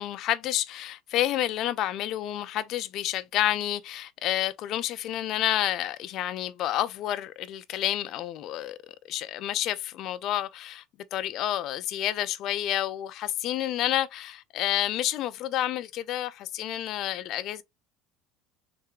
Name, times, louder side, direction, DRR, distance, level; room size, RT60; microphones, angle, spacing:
voice 1, 0.0-8.8 9.1-10.8 11.1-17.6, left 12 dB, 50° left, 0.4 m, -29 dB
3.5 x 3.3 x 3.1 m
cardioid pair, 140°, 0 cm